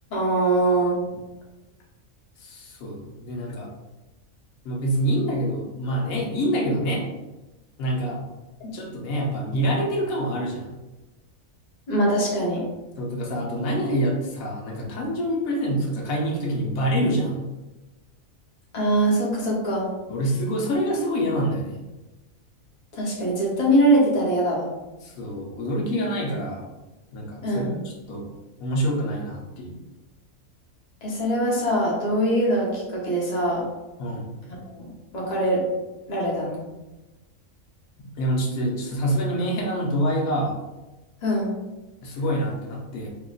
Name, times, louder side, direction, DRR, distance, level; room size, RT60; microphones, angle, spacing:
voice 1, 0.1-1.0 8.6-8.7 11.9-12.7 18.7-19.9 22.9-24.7 27.4-27.7 31.0-33.6 34.8-35.6 36.1-36.6 41.2-41.5, right 1 dB, 35° left, -4 dB, 0.9 m, -22 dB
voice 2, 2.4-3.7 4.6-7.0 7.8-8.2 8.7-10.8 13.0-17.5 20.1-21.8 25.0-26.7 27.1-28.3 28.6-29.8 34.0-34.4 38.2-40.5 42.0-43.1, equal, 90° left, -1 dB, 1.2 m, -26 dB
3.8 x 2.9 x 2.3 m, 1.1 s
omnidirectional pair, 1.4 m